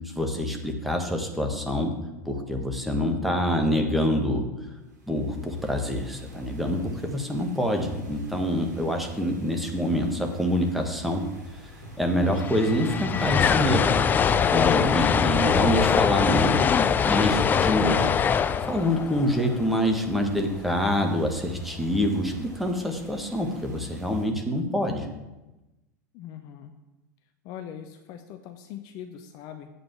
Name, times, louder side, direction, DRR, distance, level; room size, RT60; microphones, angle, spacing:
voice 1, 0.1-1.9 2.2-4.5 5.1-11.2 12.0-13.9 14.5-16.6 17.0-18.0 18.6-25.1, equal, ahead, 2 dB, 1.5 m, -26 dB
sound 1, 4.8-24.3, right 2 dB, 75° right, 2.1 m, -47 dB
sound 2, 11.9-12.0 12.1-20.4, left 7 dB, 20° left, 0.4 m, -23 dB
voice 2, 26.1-26.7 27.4-29.7, left 9 dB, 45° left, 7 dB, 0.8 m, -41 dB
8.3 x 5.0 x 7.3 m, 1.0 s
figure-of-eight pair, 85°, 10 cm